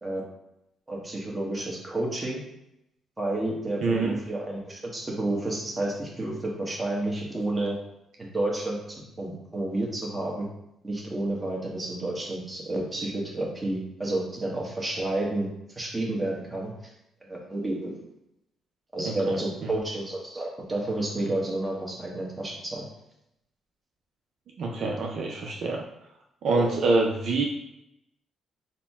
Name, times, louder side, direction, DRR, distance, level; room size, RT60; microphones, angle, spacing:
voice 1, 0.9-2.4 3.2-7.7 8.2-10.5 10.8-15.5 15.8-16.7 17.2-17.9 18.9-22.8 26.5-26.7, right 2 dB, 20° right, -2 dB, 1.2 m, -30 dB
voice 2, 3.8-4.2 19.0-19.2 24.6-25.8 26.4-27.4, right 3 dB, 65° right, 0 dB, 0.5 m, -25 dB
4.2 x 2.2 x 4.1 m, 0.84 s
cardioid pair, 90°, 0 cm